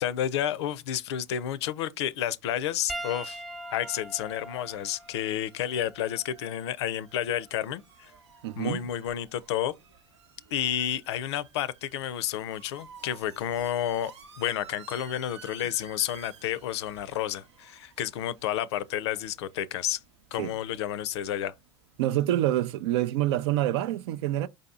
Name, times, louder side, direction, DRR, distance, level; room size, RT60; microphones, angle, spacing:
voice 1, 0.0-3.4 3.7-8.1 8.6-9.7 10.5-20.0 20.3-21.5, left 11 dB, 75° left, 0.4 m, -31 dB
sound 1, 2.7-22.1, right 6 dB, 85° right, 1.0 m, -54 dB
Piano, 2.9-7.6 8.5-8.7 10.6-10.7, right 1 dB, ahead, 0.4 m, -42 dB
voice 2, 8.4-8.8 20.4-20.5 22.0-24.5, right 13 dB, 70° right, 0.4 m, -26 dB
5.0 x 2.8 x 3.6 m
hypercardioid pair, 85°, 14 cm